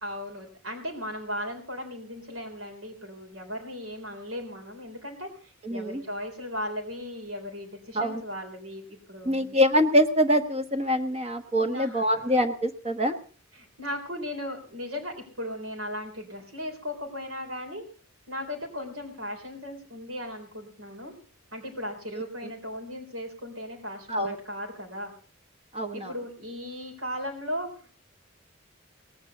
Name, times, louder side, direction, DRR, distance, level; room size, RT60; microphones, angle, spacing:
voice 1, 0.0-9.6 11.6-12.4 13.5-17.8 18.3-21.1 21.5-25.1 25.9-28.0, left 1 dB, 75° right, 0 dB, 3.9 m, -37 dB
voice 2, 5.6-6.0 7.9-8.2 9.2-13.2 22.4-22.5 24.1-24.4 25.7-26.1, equal, 30° right, 6 dB, 1.2 m, -24 dB
18.5 x 9.2 x 6.7 m, 0.42 s
head